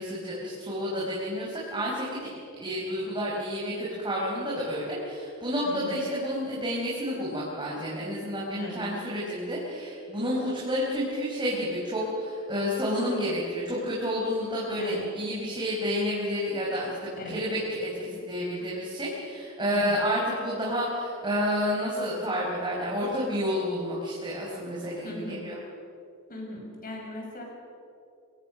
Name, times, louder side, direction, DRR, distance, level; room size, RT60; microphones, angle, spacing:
voice 1, 0.0-25.6, equal, 20° right, -5 dB, 5.3 m, -30 dB
voice 2, 5.6-6.0 8.6-8.9 14.8-15.1 17.2-17.4 19.6-20.0 25.0-25.6 26.3-27.4, left 1 dB, 40° left, 0 dB, 6.3 m, -39 dB
27.0 x 22.5 x 6.6 m, 2.5 s
head